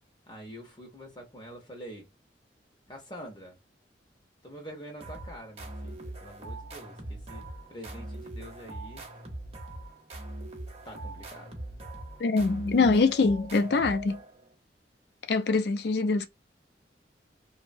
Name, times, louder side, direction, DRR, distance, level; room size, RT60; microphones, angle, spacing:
voice 1, 0.3-2.1 2.9-3.6 4.4-9.1 10.8-11.6, equal, 25° left, 0.6 m, -46 dB
sound 1, 5.0-14.5, right 1 dB, 35° right, 0.7 m, -41 dB
voice 2, 12.2-14.2 15.3-16.3, left 3 dB, 60° left, 0.4 m, -24 dB
2.7 x 2.0 x 2.5 m
head